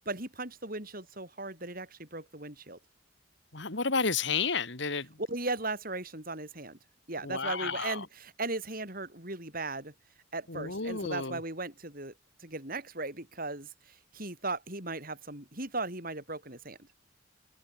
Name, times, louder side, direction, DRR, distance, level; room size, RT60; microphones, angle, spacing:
voice 1, 0.1-2.8 5.2-6.8 7.1-9.9 10.3-12.1 12.4-16.9, right 2 dB, 45° right, 7.4 m, -37 dB
voice 2, 3.5-5.1 7.2-8.0 10.5-11.4, left 4 dB, 55° left, 2.4 m, -31 dB
head